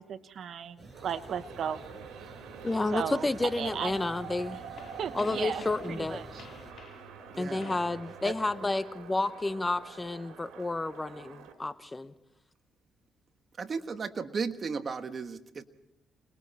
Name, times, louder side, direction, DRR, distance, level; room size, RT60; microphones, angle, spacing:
voice 1, 0.0-1.8 2.9-3.2 3.6-3.9 5.0-5.6 5.9-6.5 7.5-7.8, right 8 dB, 65° right, 11 dB, 1.0 m, -36 dB
sound 1, 0.8-6.7, right 2 dB, 25° right, 7.2 m, -49 dB
sound 2, 0.9-11.5, right 7 dB, 85° right, 3.2 m, -47 dB
voice 2, 2.6-4.6 5.1-6.2 7.4-12.1, left 2 dB, 20° left, 12 dB, 1.0 m, -31 dB
sound 3, 3.6-8.8, left 6 dB, 55° left, 6.7 m, -53 dB
voice 3, 7.3-7.7 8.2-8.3 13.6-15.6, right 5 dB, 45° right, 8 dB, 1.5 m, -35 dB
28.5 x 21.0 x 4.3 m, 0.85 s
cardioid pair, 90°, 0 cm